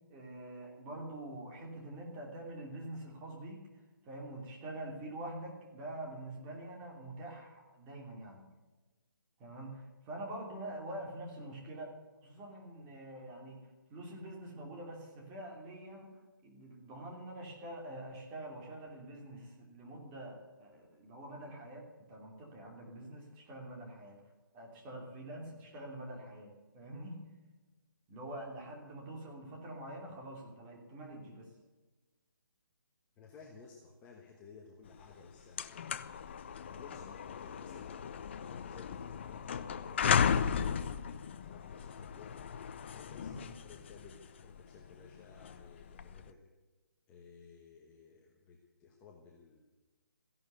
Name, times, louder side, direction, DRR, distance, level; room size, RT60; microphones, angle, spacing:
voice 1, 0.1-3.6 4.0-8.4 9.4-12.0 12.2-16.1 16.4-24.2 24.5-27.2 28.1-31.5 43.3-43.5, right 1 dB, 15° right, 0 dB, 2.9 m, -45 dB
voice 2, 33.2-35.8 36.7-42.4 42.9-46.4 47.1-49.6, left 5 dB, 10° left, -1 dB, 1.2 m, -56 dB
sound 1, 35.0-35.1 35.4-46.3, left 7 dB, 30° left, 0.7 m, -36 dB
15.5 x 11.5 x 8.1 m, 1.2 s
hypercardioid pair, 165°, 12 cm